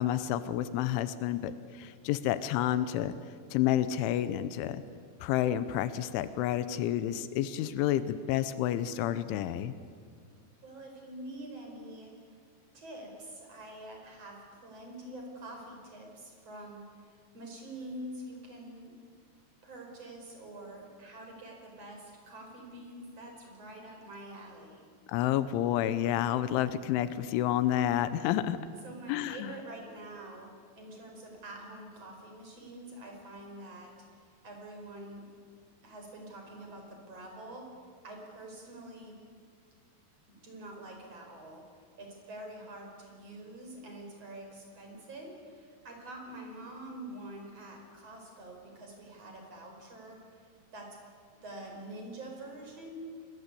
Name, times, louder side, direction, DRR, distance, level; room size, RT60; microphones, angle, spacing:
voice 1, 0.0-3.1 3.5-4.8 5.2-9.7 25.1-28.6 29.1-29.5, left 12 dB, 90° left, 13 dB, 3.3 m, -29 dB
voice 2, 10.6-12.1 12.7-19.0 19.6-24.8 28.8-35.3 35.8-39.2 40.3-50.5 50.7-51.0 51.4-53.1, right 1 dB, 35° right, 2 dB, 5.7 m, -46 dB
27.0 x 22.0 x 8.4 m, 2.1 s
omnidirectional pair, 5.3 m